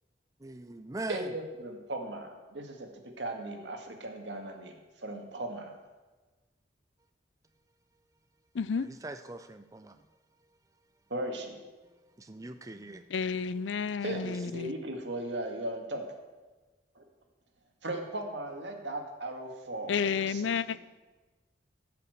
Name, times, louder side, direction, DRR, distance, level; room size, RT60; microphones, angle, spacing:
voice 1, 0.4-1.3 8.8-10.0 12.2-13.0, right 2 dB, 20° right, 0.5 m, -41 dB
voice 2, 1.1-5.8 11.1-11.6 14.0-16.1 17.0-17.1 17.8-20.8, right 1 dB, 80° right, 2.0 m, -37 dB
voice 3, 8.5-8.9 13.1-14.7 19.9-20.8, left 6 dB, 85° left, 0.5 m, -31 dB
15.0 x 5.9 x 8.0 m
head